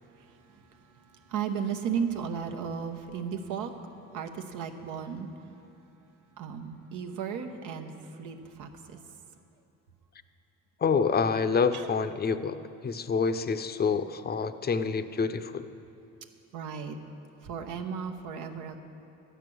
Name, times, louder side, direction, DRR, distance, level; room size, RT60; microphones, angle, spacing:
voice 1, 1.3-3.7 4.1-5.3 6.4-9.0 11.7-11.9 16.5-17.0 17.4-18.8, right 7 dB, 85° right, 5 dB, 0.9 m, -34 dB
voice 2, 10.8-12.6 12.8-15.7, left 5 dB, 35° left, 11 dB, 0.5 m, -27 dB
12.0 x 9.2 x 6.2 m, 2.7 s
cardioid pair, 90°, 30 cm